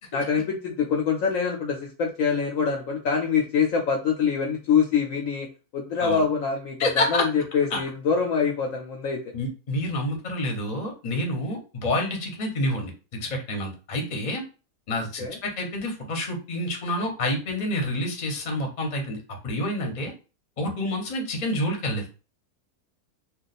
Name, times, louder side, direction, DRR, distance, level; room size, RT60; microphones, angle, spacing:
voice 1, 0.1-5.5 5.7-9.2 15.2-15.4, left 6 dB, 65° left, 1 dB, 0.9 m, -25 dB
voice 2, 6.8-7.2 7.7-7.8 9.3-12.9 13.2-14.4 14.9-19.2 19.4-20.1 20.6-22.1, left 1 dB, 35° left, 3 dB, 0.8 m, -28 dB
2.4 x 2.4 x 4.0 m, 0.33 s
omnidirectional pair, 1.7 m